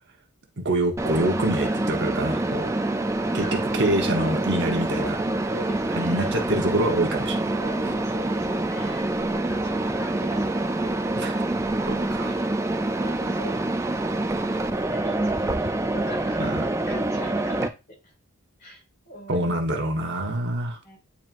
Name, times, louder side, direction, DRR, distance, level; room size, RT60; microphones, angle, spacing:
voice 1, 0.6-2.7 3.3-5.2 5.9-7.4 9.5-9.6 11.2-11.4 11.9-12.4 16.4-16.6 19.3-20.8, right 1 dB, 50° right, 1.1 m, -26 dB
Mechanisms, 1.0-17.7, right 2 dB, 15° right, 0.4 m, -26 dB
voice 2, 2.6-3.7 4.6-5.2 5.5-6.3 7.5-11.0 11.8-13.6 14.7-17.7 18.6-19.5 20.8-21.0, equal, 40° left, 3.1 m, -41 dB
9.1 x 4.2 x 2.5 m
head